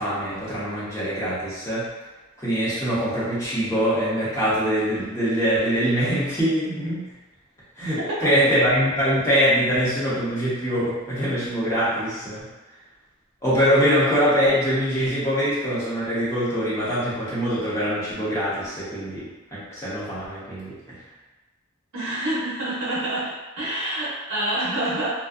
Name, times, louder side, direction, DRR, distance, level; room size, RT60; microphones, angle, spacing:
voice 1, 0.0-1.9 2.4-7.1 7.8-12.5 13.4-21.0, equal, 15° left, -10 dB, 0.9 m, -23 dB
voice 2, 21.9-25.1, right 1 dB, 70° right, -9 dB, 0.7 m, -27 dB
2.5 x 2.1 x 2.4 m, 1.2 s
head